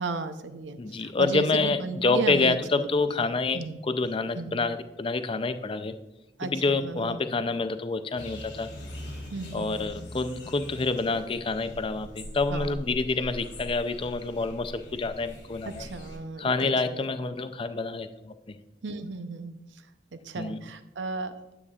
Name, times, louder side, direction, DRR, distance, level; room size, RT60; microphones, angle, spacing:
voice 1, 0.0-3.2 3.5-3.8 4.3-4.6 6.4-7.2 9.3-9.9 12.5-12.8 15.6-17.1 18.8-21.3, right 3 dB, 90° right, 9 dB, 0.7 m, -35 dB
voice 2, 0.8-3.6 3.9-5.9 6.4-8.7 9.5-15.8 16.4-18.6 20.4-20.6, left 3 dB, 30° left, 10 dB, 0.4 m, -27 dB
sound 1, 8.2-16.2, left 1 dB, 80° left, 2.4 m, -42 dB
9.8 x 8.1 x 2.4 m, 1.0 s
head